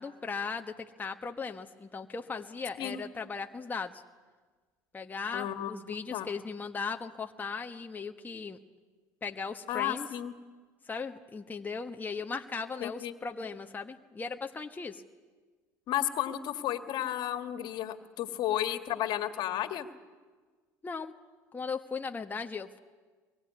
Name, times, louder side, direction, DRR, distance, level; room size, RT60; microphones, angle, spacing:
voice 1, 0.0-4.0 4.9-8.6 9.2-10.1 10.8-15.0 20.8-21.1 21.5-22.8, left 5 dB, 20° left, 4 dB, 1.3 m, -38 dB
voice 2, 5.3-6.3 9.7-10.3 12.8-13.1 15.9-19.9, left 12 dB, 60° left, 8 dB, 2.0 m, -33 dB
24.0 x 22.5 x 9.7 m, 1.4 s
hypercardioid pair, 80°, 9 cm